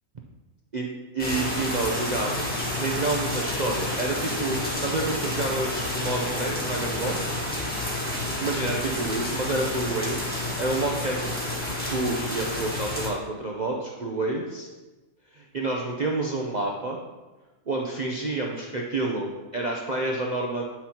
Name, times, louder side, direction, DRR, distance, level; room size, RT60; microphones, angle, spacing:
voice 1, 1.1-7.2 8.4-11.3 11.9-14.7 15.3-17.0 17.7-20.6, right 2 dB, 50° right, -1 dB, 0.5 m, -29 dB
sound 1, 1.2-13.1, left 1 dB, 5° left, 1.5 m, -30 dB
9.3 x 6.0 x 2.9 m, 1.2 s
omnidirectional pair, 1.6 m